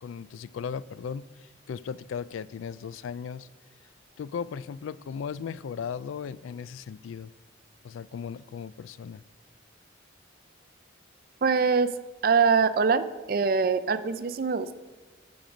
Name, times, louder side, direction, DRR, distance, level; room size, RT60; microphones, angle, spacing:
voice 1, 0.0-3.5 4.2-7.3 7.8-9.2, left 7 dB, 80° left, 18 dB, 0.3 m, -37 dB
voice 2, 11.4-11.9 12.2-14.7, right 5 dB, 45° right, 12 dB, 0.4 m, -23 dB
12.0 x 6.0 x 5.1 m, 1.3 s
head